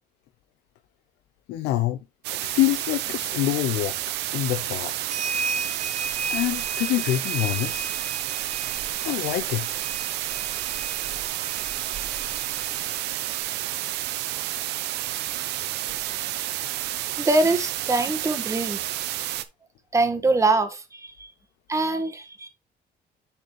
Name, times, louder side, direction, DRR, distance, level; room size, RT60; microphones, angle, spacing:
voice 1, 1.5-2.0 2.4-3.9 4.3-4.9 6.3-7.9 9.0-9.7, left 15 dB, 85° left, 0.7 m, -25 dB
sound 1, 2.2-19.4, right 14 dB, 85° right, 0.8 m, -30 dB
sound 2, 4.4-13.4, right 3 dB, 45° right, 2.1 m, -36 dB
voice 2, 17.2-18.8 19.9-21.3 21.7-22.5, right 2 dB, 20° right, 1.5 m, -23 dB
10.5 x 4.2 x 3.1 m
cardioid pair, 110°, 17 cm